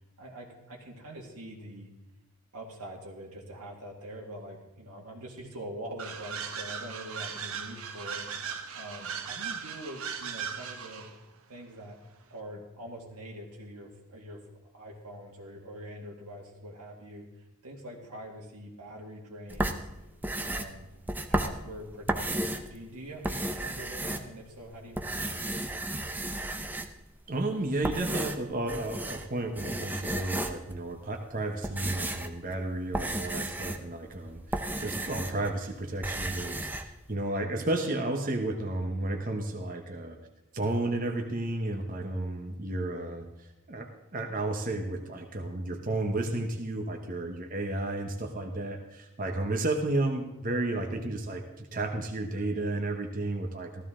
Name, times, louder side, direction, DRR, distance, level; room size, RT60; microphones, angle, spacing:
voice 1, 0.2-1.9 2.5-8.3 8.7-11.2 11.5-12.0 12.3-19.9 20.3-20.9 21.3-25.7, right 1 dB, 90° right, -2 dB, 2.1 m, -44 dB
sound 1, 6.0-11.1, right 7 dB, 70° right, 1.1 m, -38 dB
sound 2, 19.5-22.7 23.1-24.6 24.9-27.1 27.6-29.3 29.6-30.8 31.3-35.5 35.8-36.8, right 1 dB, 10° right, 0.6 m, -33 dB
voice 2, 27.3-40.2 40.5-53.9, right 2 dB, 40° right, 3 dB, 1.0 m, -32 dB
15.0 x 13.0 x 3.8 m, 1.0 s
head